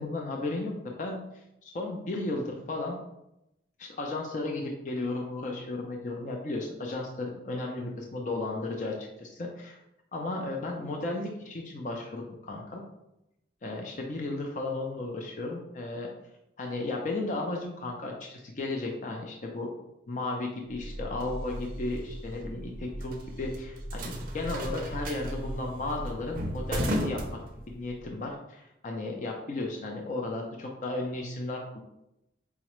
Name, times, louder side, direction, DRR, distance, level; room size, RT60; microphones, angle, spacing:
voice 1, 0.0-3.0 3.8-9.8 10.1-12.8 13.6-16.1 16.6-19.7 20.1-27.2 27.7-31.8, left 2 dB, 40° left, 0 dB, 0.4 m, -34 dB
sound 1, 20.7-28.0, equal, 45° right, 0.4 m, -35 dB
4.7 x 2.1 x 3.0 m, 0.87 s
head